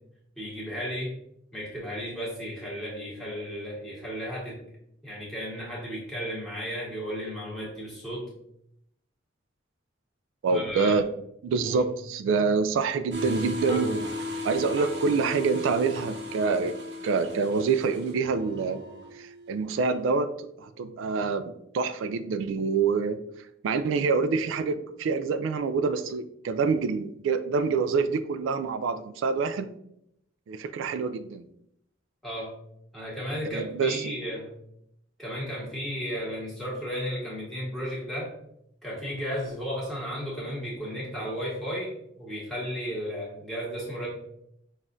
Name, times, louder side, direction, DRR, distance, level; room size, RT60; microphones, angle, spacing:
voice 1, 0.3-1.1 1.5-4.6 5.0-8.3 10.5-11.0 11.6-11.8 32.2-32.5 32.9-34.5 35.2-38.3 38.8-44.1, equal, ahead, -7 dB, 1.4 m, -34 dB
voice 2, 10.4-11.0 11.4-14.1 14.4-16.7 17.0-18.8 19.2-21.4 21.7-23.2 23.6-29.7 30.5-31.4 33.5-34.1, right 4 dB, 90° right, 11 dB, 0.3 m, -26 dB
sound 1, 13.1-20.0, left 1 dB, 60° right, 0.7 m, -35 dB
6.0 x 2.4 x 2.6 m, 0.75 s
head